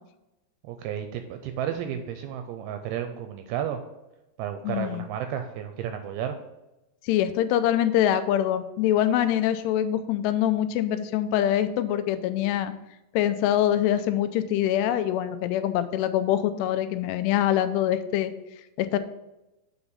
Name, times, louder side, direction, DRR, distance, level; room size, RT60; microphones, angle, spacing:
voice 1, 0.6-3.8 4.4-6.4, right 9 dB, 80° right, 7 dB, 2.3 m, -32 dB
voice 2, 4.6-5.0 7.0-12.7 13.1-18.3 18.8-19.0, left 11 dB, 90° left, 11 dB, 2.7 m, -24 dB
7.0 x 4.9 x 5.4 m, 0.97 s
omnidirectional pair, 4.7 m